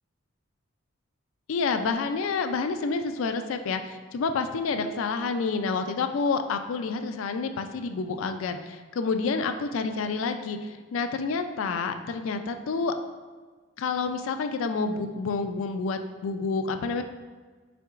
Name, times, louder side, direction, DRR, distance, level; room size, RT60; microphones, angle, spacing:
voice 1, 1.5-12.9 13.8-17.0, left 4 dB, 70° left, 8 dB, 0.3 m, -29 dB
5.8 x 3.7 x 2.4 m, 1.4 s
head